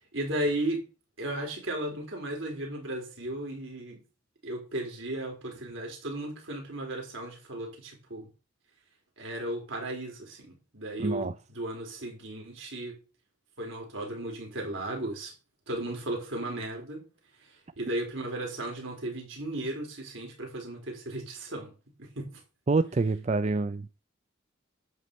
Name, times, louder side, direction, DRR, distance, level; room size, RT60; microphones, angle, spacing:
voice 1, 0.1-0.8 1.2-4.0 4.4-8.3 9.2-13.0 13.6-15.3 15.7-17.0 17.8-21.7 22.0-22.3, right 1 dB, 75° right, 4.0 m, -35 dB
voice 2, 11.0-11.3 22.7-23.9, right 3 dB, 35° right, 0.4 m, -26 dB
11.0 x 4.2 x 7.8 m
head